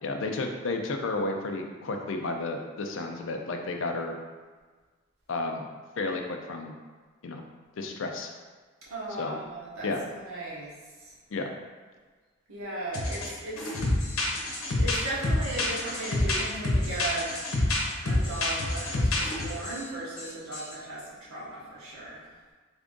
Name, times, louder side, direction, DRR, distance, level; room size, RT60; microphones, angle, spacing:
voice 1, 0.0-4.2 5.3-5.7 6.0-6.7 7.2-7.4 7.8-8.3 9.2-9.4 9.8-10.0 11.3-11.5, left 3 dB, 60° left, 4 dB, 0.4 m, -32 dB
voice 2, 8.8-10.7 11.0-11.1 12.5-14.4 14.7-17.6 17.8-22.3, right 2 dB, 85° right, -6 dB, 1.1 m, -37 dB
sound 1, 12.9-13.3 13.6-19.8 20.2-20.3 20.5-20.7, left 1 dB, 85° left, 0.8 m, -27 dB
3.5 x 2.5 x 3.6 m, 1.4 s
head